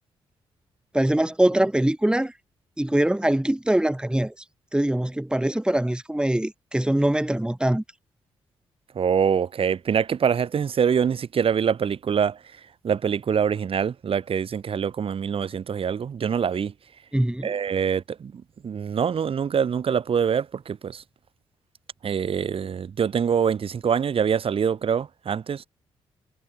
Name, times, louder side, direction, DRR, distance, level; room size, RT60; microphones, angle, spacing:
voice 1, 0.9-2.3 2.8-4.3 4.7-7.8 17.1-17.5, right 1 dB, 10° right, 2.3 m, -23 dB
voice 2, 8.9-12.4 12.8-16.7 17.4-18.3 18.6-21.0 22.0-25.7, right 7 dB, 55° right, 1.7 m, -24 dB
supercardioid pair, 55°, 11 cm